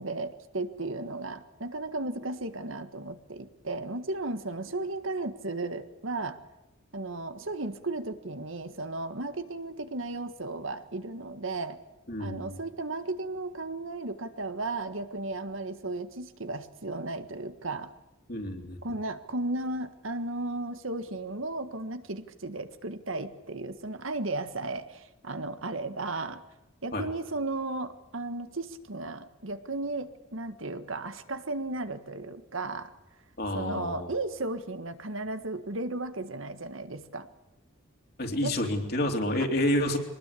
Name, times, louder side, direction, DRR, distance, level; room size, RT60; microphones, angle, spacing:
voice 1, 0.0-6.4 6.9-11.8 12.2-17.9 18.8-26.4 26.8-32.9 33.5-37.3 38.4-38.6, right 2 dB, 75° right, 9 dB, 1.6 m, -35 dB
voice 2, 12.1-12.6 18.3-18.8 26.9-27.1 33.4-34.1 38.2-40.0, left 1 dB, 45° left, 3 dB, 3.4 m, -29 dB
24.0 x 20.0 x 8.5 m, 1.0 s
head